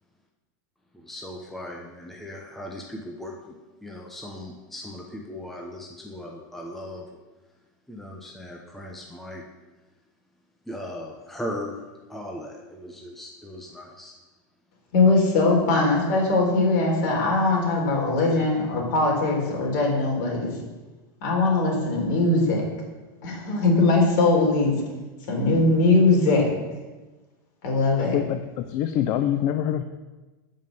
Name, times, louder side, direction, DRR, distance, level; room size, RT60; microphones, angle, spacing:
voice 1, 0.9-7.0 7.9-9.4 10.7-11.8 12.1-14.1, left 1 dB, ahead, -1 dB, 0.9 m, -38 dB
voice 2, 14.9-20.5 21.2-22.7 23.2-24.7 25.3-26.5 27.6-28.2, left 3 dB, 55° left, -1 dB, 4.2 m, -21 dB
voice 3, 28.1-29.8, left 11 dB, 35° left, 8 dB, 0.6 m, -25 dB
12.5 x 5.4 x 7.8 m, 1.2 s
supercardioid pair, 170°, 11 cm